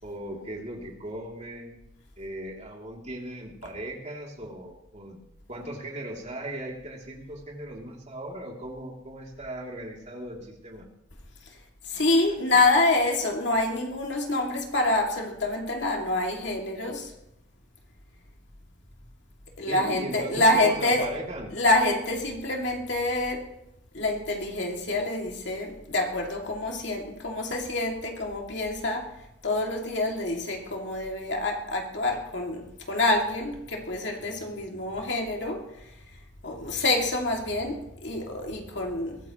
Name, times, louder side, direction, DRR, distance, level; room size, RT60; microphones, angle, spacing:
voice 1, 0.0-1.8 2.2-5.2 5.5-10.9 11.9-12.0 19.7-21.5, right 1 dB, 35° right, 3.1 m, -38 dB
voice 2, 11.8-17.1 19.6-21.1 21.5-23.6 23.9-35.9 36.4-39.2, left 2 dB, 60° left, 2.6 m, -27 dB
22.0 x 14.0 x 3.1 m
head